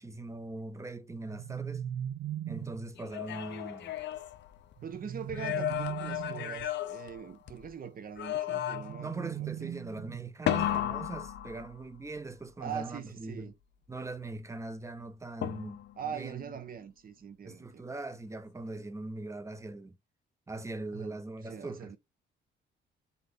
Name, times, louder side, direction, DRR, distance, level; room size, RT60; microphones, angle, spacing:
voice 1, 0.0-1.8 2.5-3.9 9.0-13.5 13.9-16.5 17.4-20.0 20.5-22.0, right 2 dB, 15° right, 0.7 m, -41 dB
sound 1, 1.1-2.9 4.8-6.6 8.5-10.4, right 10 dB, 85° right, 0.6 m, -39 dB
sound 2, 3.0-4.9 5.3-7.7 8.2-9.1 10.5-12.1 15.4-16.1, left 12 dB, 65° left, 0.5 m, -34 dB
voice 2, 4.8-9.7 12.6-13.5 16.0-17.9 20.9-21.2 21.4-22.0, right 7 dB, 45° right, 0.8 m, -42 dB
4.0 x 2.6 x 3.4 m
cardioid pair, 90°, 20 cm